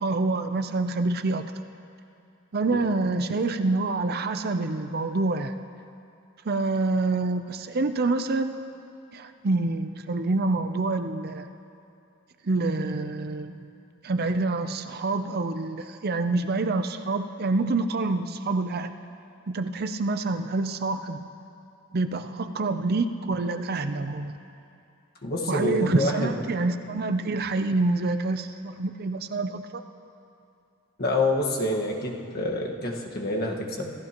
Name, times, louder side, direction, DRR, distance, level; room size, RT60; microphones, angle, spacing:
voice 1, 0.0-1.5 2.5-5.5 6.4-8.5 9.1-11.5 12.4-13.7 14.0-18.9 19.5-21.3 21.9-24.3 25.5-29.8, right 3 dB, 45° right, 9 dB, 0.5 m, -27 dB
voice 2, 25.2-26.3 31.0-33.9, left 2 dB, 45° left, -1 dB, 1.5 m, -27 dB
27.0 x 14.5 x 3.0 m, 2.6 s
head